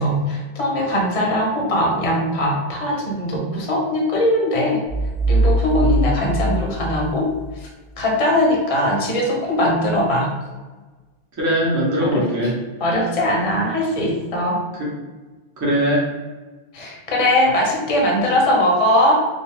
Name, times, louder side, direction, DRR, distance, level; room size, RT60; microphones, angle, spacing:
voice 1, 0.0-4.8 5.3-7.3 8.0-10.3 12.0-12.2 12.8-14.6 16.7-19.1, left 1 dB, 40° left, -1 dB, 0.5 m, -20 dB
sound 1, 4.9-7.5, right 2 dB, 50° right, 0.8 m, -21 dB
voice 2, 5.8-6.2 11.4-12.6 14.8-14.9 15.6-16.0, equal, 20° right, -5 dB, 0.5 m, -21 dB
2.4 x 2.2 x 3.4 m, 1.3 s
omnidirectional pair, 1.1 m